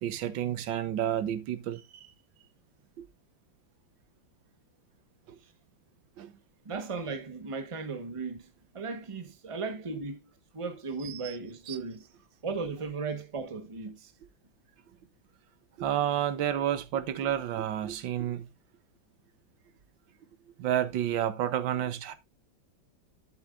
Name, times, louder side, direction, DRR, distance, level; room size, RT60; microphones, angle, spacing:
voice 1, 0.0-2.1 3.0-3.1 5.3-5.4 6.2-6.3 11.0-11.4 11.7-11.8 15.8-18.5 20.6-22.1, right 11 dB, 85° right, 1.6 m, -30 dB
voice 2, 6.6-10.2 10.5-12.0 12.4-14.1, right 4 dB, 20° right, 1.1 m, -36 dB
11.5 x 7.4 x 2.5 m
omnidirectional pair, 2.0 m